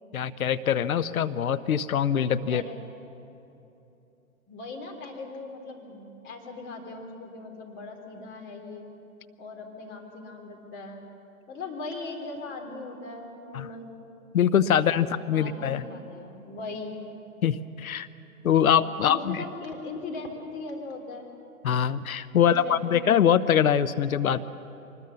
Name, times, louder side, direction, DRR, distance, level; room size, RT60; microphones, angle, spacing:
voice 1, 0.1-2.6 13.5-13.7 14.3-15.8 17.4-18.1 18.4-19.4 21.6-24.4, left 9 dB, 75° left, 14 dB, 0.9 m, -23 dB
voice 2, 4.5-8.9 9.4-11.0 11.5-13.9 15.0-17.0 19.0-21.3 22.4-23.0, left 3 dB, 25° left, 1 dB, 3.5 m, -39 dB
24.0 x 20.5 x 7.0 m, 2.9 s
hypercardioid pair, 120°, 43 cm